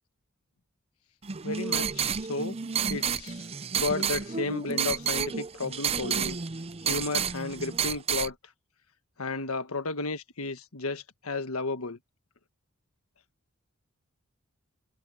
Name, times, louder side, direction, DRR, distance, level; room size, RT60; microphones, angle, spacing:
sound 1, 1.2-8.3, right 7 dB, 30° right, 0.5 m, -30 dB
voice 1, 1.4-2.6 2.9-3.4 3.7-6.4 6.9-8.3 9.2-12.0, left 3 dB, 90° left, 1.5 m, -33 dB
head